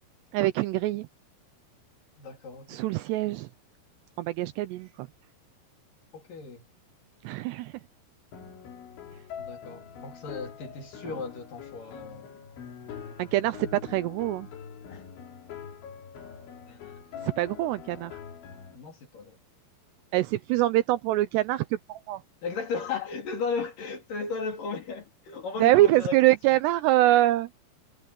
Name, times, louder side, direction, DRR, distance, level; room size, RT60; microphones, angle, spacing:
voice 1, 0.3-1.1 2.7-3.5 4.2-5.1 7.2-7.7 13.2-14.5 17.2-18.1 20.1-22.2 25.6-27.5, right 15 dB, 80° right, 2.6 m, -24 dB
voice 2, 2.2-2.8 6.1-6.6 9.4-12.3 13.4-13.5 14.9-15.1 16.7-17.0 18.7-19.4 22.4-26.2, left 4 dB, 50° left, 4.2 m, -35 dB
sound 1, 8.3-18.8, left 7 dB, 80° left, 5.8 m, -44 dB
omnidirectional pair, 5.3 m